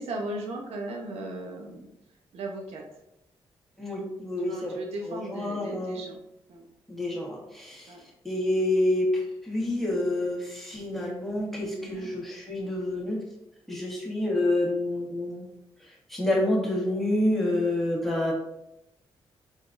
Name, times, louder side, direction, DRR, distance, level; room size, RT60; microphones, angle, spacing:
voice 1, 0.0-1.9 2.3-2.8 4.4-6.2 6.5-6.6 7.9-8.0 11.8-12.1, right 1 dB, 80° right, 1 dB, 0.8 m, -37 dB
voice 2, 3.8-4.8 5.1-6.0 6.9-7.9 8.2-13.2 13.7-15.5 16.1-18.3, left 1 dB, ahead, -3 dB, 1.4 m, -28 dB
3.8 x 3.6 x 2.5 m, 0.86 s
supercardioid pair, 55°, 10 cm